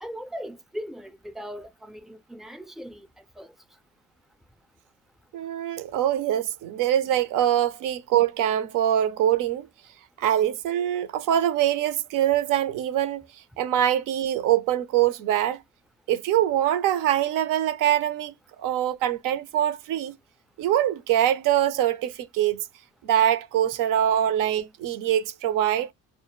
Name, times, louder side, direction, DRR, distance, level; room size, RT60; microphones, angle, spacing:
voice 1, 0.0-3.1 3.4-3.5, equal, ahead, 0.4 m, -38 dB
voice 2, 5.3-9.7 10.2-13.3 13.6-15.6 16.1-20.2 20.6-22.7 23.0-25.9, right 11 dB, 75° right, 0.6 m, -24 dB
2.1 x 2.0 x 3.0 m
supercardioid pair, 75°, 32 cm